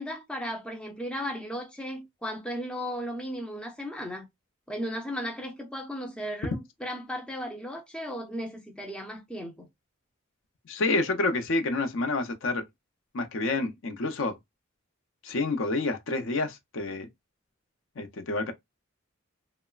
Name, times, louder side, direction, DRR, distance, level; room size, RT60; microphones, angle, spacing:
voice 1, 0.0-4.3 4.7-9.7, equal, 5° left, 0.4 m, -35 dB
voice 2, 10.7-12.6 13.1-14.4 15.2-17.1 18.0-18.5, left 3 dB, 65° left, 0.5 m, -28 dB
3.0 x 2.0 x 2.3 m
head